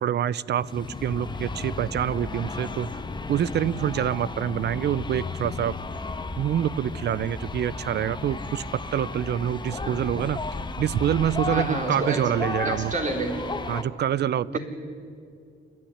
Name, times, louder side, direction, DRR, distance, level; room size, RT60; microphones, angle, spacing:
voice 1, 0.0-2.9 3.3-5.7 6.4-10.4 10.8-12.9 13.7-14.6, right 10 dB, 55° right, 20 dB, 0.6 m, -26 dB
sound 1, 0.6-13.8, left 3 dB, 25° left, 1.2 m, -34 dB
voice 2, 11.5-12.2 12.6-13.4 14.5-14.6, right 2 dB, 40° right, 3 dB, 4.1 m, -29 dB
27.5 x 12.0 x 10.0 m, 2.4 s
cardioid pair, 90°, 20 cm